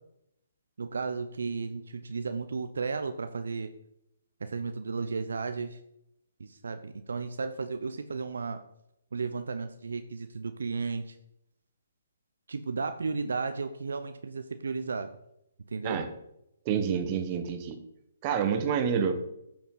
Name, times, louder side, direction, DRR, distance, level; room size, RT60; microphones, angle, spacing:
voice 1, 0.8-3.7 4.4-5.8 6.4-8.6 9.1-11.2 12.5-15.1 15.7-16.0, right 4 dB, 75° right, 9 dB, 0.7 m, -34 dB
voice 2, 16.6-17.8 18.2-19.1, right 7 dB, 35° right, 7 dB, 1.3 m, -28 dB
10.5 x 7.0 x 4.0 m, 0.81 s
figure-of-eight pair, 135°, 0 cm